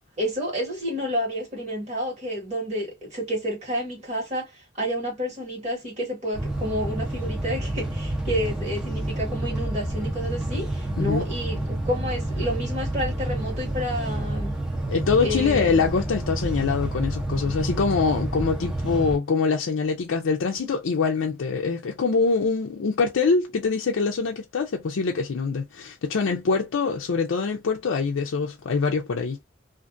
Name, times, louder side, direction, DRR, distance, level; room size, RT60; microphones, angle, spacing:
voice 1, 0.2-14.5 15.2-15.8, equal, 35° right, 1.4 m, -30 dB
sound 1, 6.3-19.2, right 1 dB, 5° right, 0.7 m, -29 dB
voice 2, 14.9-29.4, left 4 dB, 85° left, 0.4 m, -24 dB
2.5 x 2.4 x 2.5 m
head